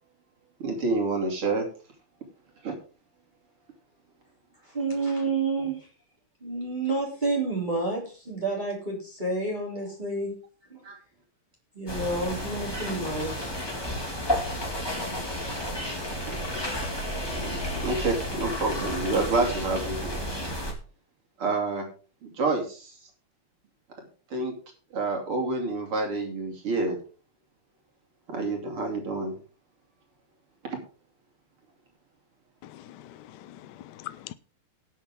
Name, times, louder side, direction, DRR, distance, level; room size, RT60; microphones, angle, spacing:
voice 1, 0.6-1.7 2.6-2.8 10.8-11.0 16.3-16.6 17.3-20.2 21.4-21.9 22.2-22.9 24.3-24.5 24.9-27.0 28.3-29.4 30.6-30.8, right 3 dB, 85° right, 3.6 m, -28 dB
voice 2, 4.6-5.9 6.4-10.4 10.7-10.9 11.7-13.5 15.3-16.0, right 3 dB, 20° right, 3.5 m, -30 dB
sound 1, 11.9-20.7, equal, 10° left, 2.3 m, -32 dB
voice 3, 32.6-34.3, left 14 dB, 70° left, 1.1 m, -43 dB
18.5 x 6.5 x 3.7 m
omnidirectional pair, 2.4 m